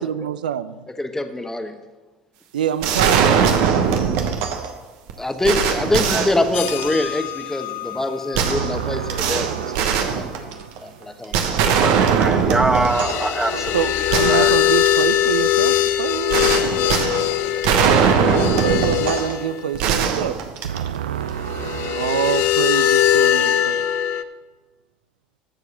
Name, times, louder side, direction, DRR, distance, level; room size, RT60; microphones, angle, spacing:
voice 1, 0.0-0.9 2.5-4.4 8.4-11.1 13.5-17.1 18.6-23.8, right 9 dB, 80° right, 14 dB, 0.5 m, -27 dB
voice 2, 1.0-1.7 5.2-9.8 10.1-11.8, left 2 dB, 10° left, 7 dB, 1.2 m, -25 dB
sound 1, 2.8-4.7 5.1-5.2 5.4-7.1 8.3-10.8 11.3-13.3 13.7-13.8 14.1-15.1 16.3-19.4 19.7-21.1, right 7 dB, 65° right, 1.1 m, -20 dB
voice 3, 5.9-6.3 11.8-14.5 14.9-15.1, right 2 dB, 10° right, 7 dB, 1.2 m, -24 dB
sound 2, 6.5-8.7 9.1-9.2 12.8-19.5 21.5-24.2, left 12 dB, 60° left, 0.6 m, -21 dB
14.0 x 4.8 x 5.7 m, 1.2 s
hypercardioid pair, 70°, 5 cm